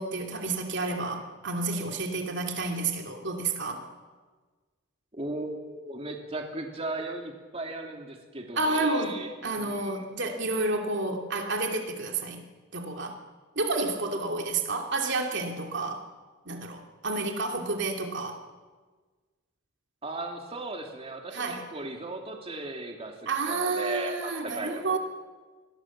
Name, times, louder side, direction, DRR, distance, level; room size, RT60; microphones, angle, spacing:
voice 1, 0.0-3.8 8.6-9.1 9.4-12.4 12.7-13.2 13.6-16.0 16.5-18.4 21.3-21.6 23.3-25.0, right 3 dB, 60° right, 3 dB, 2.7 m, -30 dB
voice 2, 5.1-10.0 20.0-25.0, right 2 dB, 30° right, 2 dB, 2.6 m, -37 dB
28.5 x 22.0 x 7.4 m, 1.4 s
head